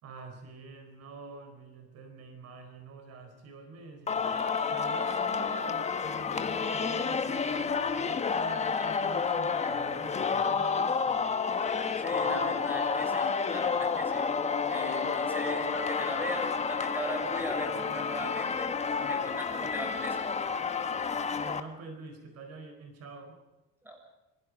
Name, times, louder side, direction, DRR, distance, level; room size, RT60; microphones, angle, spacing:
voice 1, 0.0-4.2 4.7-11.3 21.4-23.4, right 3 dB, 55° right, 6 dB, 4.5 m, -46 dB
Singing, 4.1-21.6, left 5 dB, 20° left, 1.4 m, -30 dB
voice 2, 12.0-14.2 14.7-18.7 19.0-20.2 23.8-24.0, equal, 5° right, 2 dB, 7.1 m, -38 dB
27.0 x 25.5 x 5.3 m, 1.0 s
cardioid pair, 160°, 31 cm